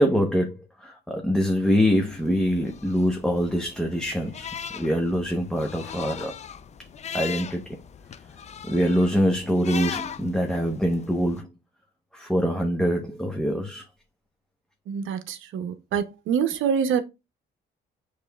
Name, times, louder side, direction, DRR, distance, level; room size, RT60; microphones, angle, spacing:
voice 1, 0.0-4.5 4.7-6.3 7.1-7.6 8.6-11.5 12.1-13.8, equal, 5° left, 0.8 m, -24 dB
sound 1, 1.6-11.4, left 7 dB, 35° left, 0.4 m, -39 dB
voice 2, 14.9-17.0, right 7 dB, 80° right, 0.7 m, -26 dB
6.8 x 3.1 x 2.2 m
cardioid pair, 90°, 20 cm